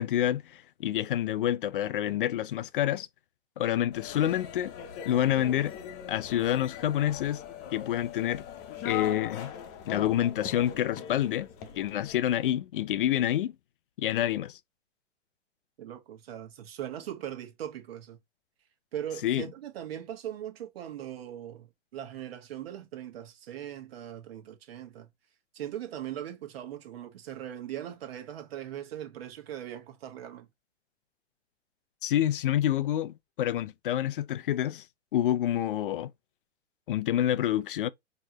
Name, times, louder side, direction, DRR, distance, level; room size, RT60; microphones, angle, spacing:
voice 1, 0.0-3.1 3.6-4.7 5.1-5.7 6.1-7.4 7.7-8.4 8.8-9.5 9.9-11.5 11.8-13.5 14.0-14.6 19.2-19.5 32.0-34.8 35.1-36.1 36.9-37.9, left 12 dB, 45° left, 0.4 m, -28 dB
sound 1, 3.9-12.2, left 8 dB, 25° left, 0.9 m, -41 dB
voice 2, 15.8-18.2 18.9-21.7 21.9-25.1 25.5-30.5, right 11 dB, 55° right, 1.6 m, -40 dB
4.5 x 3.0 x 2.9 m
hypercardioid pair, 125°, 37 cm